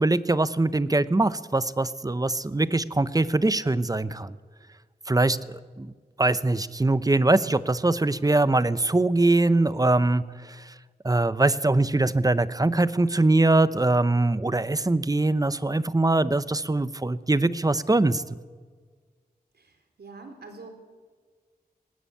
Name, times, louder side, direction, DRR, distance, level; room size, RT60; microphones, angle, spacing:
voice 1, 0.0-4.4 5.1-5.4 5.8-5.9 6.2-10.7 11.0-18.2, right 2 dB, 20° right, 15 dB, 0.9 m, -22 dB
voice 2, 19.5-20.7, right 3 dB, 80° right, 5 dB, 4.2 m, -45 dB
19.0 x 19.0 x 8.6 m, 1.5 s
wide cardioid pair, 65°, 16 cm